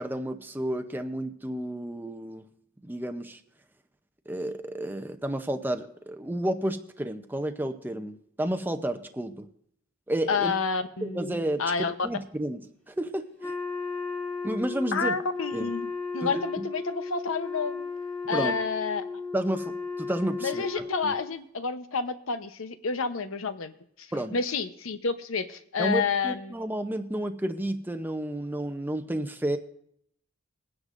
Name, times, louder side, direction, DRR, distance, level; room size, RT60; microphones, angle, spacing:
voice 1, 0.0-2.4 2.8-3.4 4.3-9.5 10.1-10.5 11.0-12.6 12.9-13.6 14.4-15.2 15.5-15.7 16.2-16.7 18.3-18.6 19.3-20.7 21.0-21.1 24.1-24.4 25.8-29.6, right 1 dB, 10° right, 6 dB, 0.6 m, -31 dB
voice 2, 10.3-11.9 14.9-17.9 18.3-19.0 20.4-23.7 24.0-26.5, left 5 dB, 75° left, 10 dB, 0.8 m, -30 dB
Wind instrument woodwind instrument, 13.4-21.3, left 4 dB, 10° left, 1.8 m, -35 dB
22.5 x 9.7 x 2.5 m, 0.68 s
head